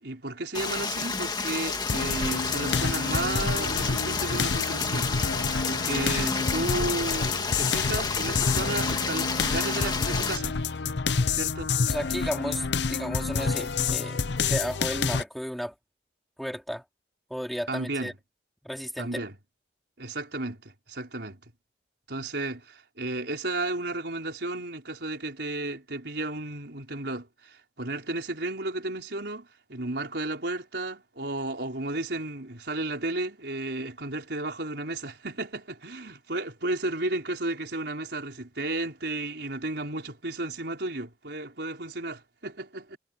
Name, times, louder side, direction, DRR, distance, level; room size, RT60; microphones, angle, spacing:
voice 1, 0.0-5.1 5.6-10.6 11.3-11.7 17.7-18.1 19.0-19.3 20.0-21.4 22.1-43.0, right 2 dB, 70° right, 4.4 m, -33 dB
Stream, 0.5-10.4, left 4 dB, 25° left, 2.1 m, -30 dB
sound 1, 1.9-15.2, left 5 dB, 80° left, 0.7 m, -28 dB
voice 2, 11.9-15.7 16.4-16.8 17.3-18.1 18.6-19.2, equal, ahead, 4.2 m, -34 dB
head